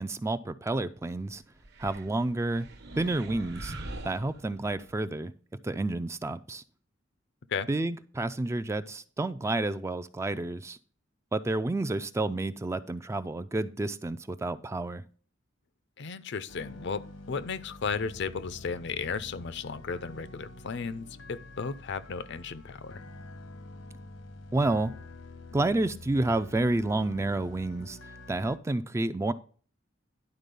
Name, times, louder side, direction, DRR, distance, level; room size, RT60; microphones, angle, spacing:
voice 1, 0.0-1.4 1.8-2.7 3.0-3.7 4.0-5.3 5.6-6.6 7.7-10.8 11.3-15.0 24.5-24.9 25.5-28.0 28.3-29.3, right 2 dB, 15° right, 0.3 m, -30 dB
sound 1, 1.6-4.9, right 2 dB, 55° right, 1.0 m, -43 dB
voice 2, 16.0-23.0, left 5 dB, 60° left, 0.5 m, -35 dB
sound 2, 16.5-28.6, left 2 dB, 85° left, 1.1 m, -47 dB
11.0 x 4.1 x 5.3 m
head